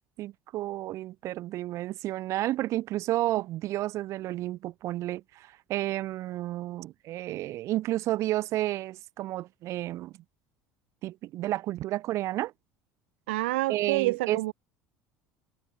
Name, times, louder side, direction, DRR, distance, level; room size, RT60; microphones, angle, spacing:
voice 1, 0.2-10.1 11.0-12.5 13.7-14.4, right 15 dB, 60° right, 1.0 m, -31 dB
voice 2, 13.3-14.5, right 20 dB, 90° right, 0.4 m, -28 dB
supercardioid pair, 95°, 6 cm